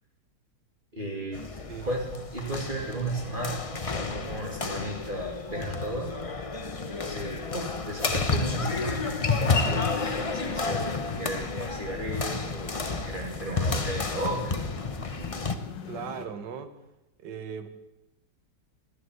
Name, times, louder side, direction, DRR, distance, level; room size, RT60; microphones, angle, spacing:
voice 1, 0.9-1.4 1.9-2.0 2.3-6.1 7.0-14.6, right 1 dB, 25° right, -1 dB, 2.8 m, -35 dB
sound 1, 1.3-15.6, left 4 dB, 30° left, 0.6 m, -31 dB
sound 2, 8.2-16.3, left 6 dB, 85° left, 1.8 m, -42 dB
voice 2, 15.9-16.7 17.2-17.7, right 6 dB, 75° right, 8 dB, 1.9 m, -38 dB
15.5 x 11.5 x 8.0 m, 0.96 s
omnidirectional pair, 1.9 m